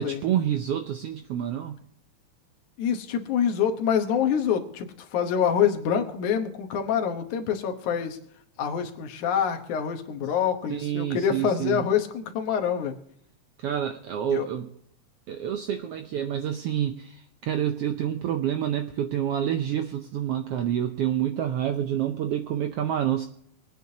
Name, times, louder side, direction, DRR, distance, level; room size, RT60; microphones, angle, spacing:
voice 1, 0.0-1.8 10.7-11.8 13.6-14.7 15.3-23.3, right 10 dB, 75° right, 6 dB, 1.3 m, -28 dB
voice 2, 2.8-8.2 8.6-13.0 14.3-14.5, left 8 dB, 80° left, 5 dB, 2.6 m, -26 dB
24.5 x 9.4 x 2.8 m, 0.70 s
omnidirectional pair, 3.4 m